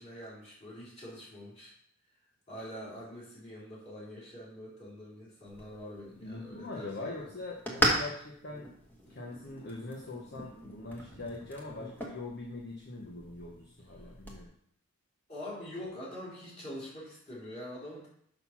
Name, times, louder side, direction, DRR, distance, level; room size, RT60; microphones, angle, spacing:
voice 1, 0.0-1.7 2.5-7.3 8.5-8.7 11.7-11.9 15.3-18.1, equal, 30° left, -6 dB, 3.7 m, -45 dB
sound 1, 5.5-14.4, right 1 dB, 10° left, 1.5 m, -37 dB
voice 2, 6.2-8.7 9.1-14.5, left 2 dB, 50° left, -2 dB, 1.2 m, -42 dB
6.6 x 6.3 x 5.8 m, 0.68 s
head